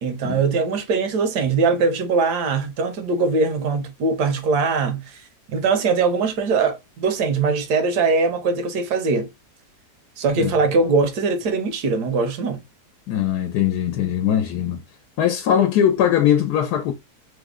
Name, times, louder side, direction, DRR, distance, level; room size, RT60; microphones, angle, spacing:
voice 1, 0.0-5.2 5.5-9.3 10.2-12.6, right 4 dB, 85° right, 1.3 m, -21 dB
voice 2, 13.1-14.8 15.2-16.9, left 9 dB, 85° left, 1.2 m, -20 dB
3.4 x 2.0 x 3.6 m
omnidirectional pair, 1.7 m